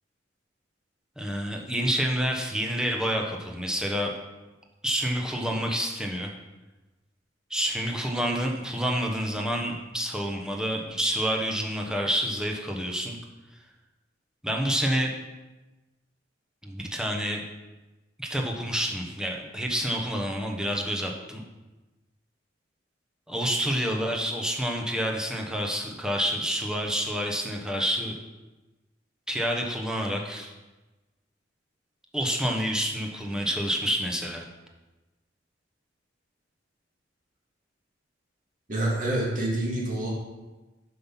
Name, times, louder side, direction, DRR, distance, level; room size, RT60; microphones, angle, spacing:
voice 1, 1.2-4.1 4.8-6.3 7.5-13.2 14.4-15.1 16.6-17.4 18.2-21.4 23.3-28.1 29.3-30.5 32.1-34.4, equal, 5° right, 1 dB, 0.9 m, -28 dB
voice 2, 38.7-40.1, right 1 dB, 45° right, -4 dB, 2.5 m, -27 dB
7.5 x 5.6 x 5.8 m, 1.1 s
head